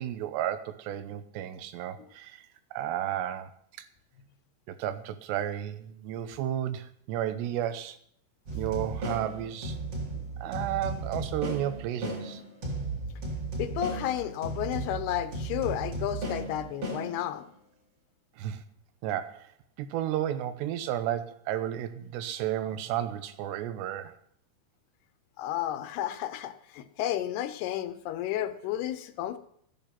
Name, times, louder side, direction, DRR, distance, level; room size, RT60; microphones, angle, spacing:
voice 1, 0.0-2.5 2.7-3.5 3.8-3.9 4.7-8.0 8.5-9.8 10.4-12.4 18.4-18.6 19.0-19.5 19.8-24.2, right 11 dB, 90° right, 11 dB, 3.0 m, -33 dB
sound 1, 8.4-17.6, right 2 dB, 40° right, 3.7 m, -35 dB
voice 2, 13.6-17.4 25.4-29.4, left 12 dB, 80° left, 11 dB, 2.7 m, -32 dB
13.5 x 9.3 x 5.9 m, 0.66 s
omnidirectional pair, 4.8 m